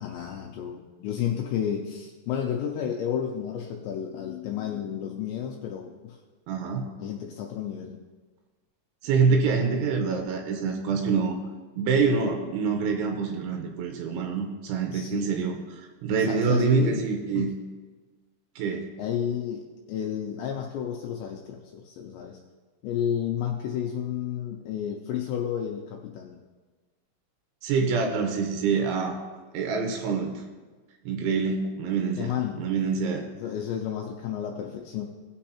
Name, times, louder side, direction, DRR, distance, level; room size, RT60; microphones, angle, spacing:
voice 1, 0.0-6.2 7.0-8.0 14.9-15.3 16.1-17.0 17.3-17.5 19.0-22.4 22.8-26.4 31.2-31.3 32.2-32.7 33.3-35.0, left 9 dB, 90° left, 1 dB, 2.6 m, -31 dB
voice 2, 6.5-6.8 9.0-11.3 11.8-17.5 18.6-18.9 27.6-29.2 29.5-30.4 31.1-33.3, right 5 dB, 75° right, 3 dB, 3.1 m, -26 dB
18.0 x 6.2 x 2.9 m, 1.3 s
omnidirectional pair, 5.7 m